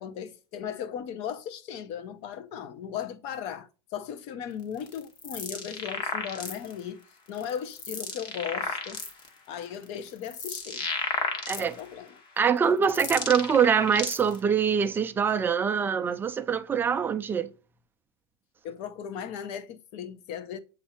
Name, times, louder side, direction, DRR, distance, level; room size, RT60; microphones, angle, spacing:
voice 1, 0.0-7.0 7.3-9.0 9.5-10.9 11.6-12.1 18.6-20.6, left 8 dB, 45° left, 0.8 m, -37 dB
sound 1, 4.8-6.8 7.4-9.3 9.8-12.0 12.6-14.4, left 4 dB, 30° left, 1.0 m, -33 dB
voice 2, 11.5-11.8 12.4-17.5, right 7 dB, 15° right, 0.4 m, -24 dB
8.0 x 2.7 x 4.4 m
supercardioid pair, 150°, 15 cm